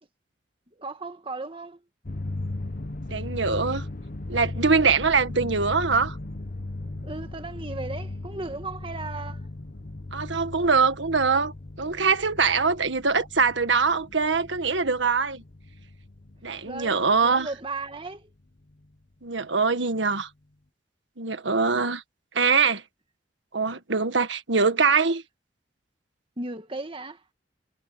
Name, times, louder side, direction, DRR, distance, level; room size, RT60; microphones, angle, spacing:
voice 1, 0.7-1.8 7.0-9.5 16.6-18.3 26.4-27.2, right 3 dB, 30° right, 1.9 m, -36 dB
sound 1, 2.0-18.1, left 2 dB, 50° left, 1.2 m, -37 dB
voice 2, 3.1-3.8 4.3-6.2 10.1-15.4 16.4-17.5 19.2-20.3 21.2-22.0 22.3-22.8 23.5-25.2, right 4 dB, 80° right, 1.7 m, -23 dB
head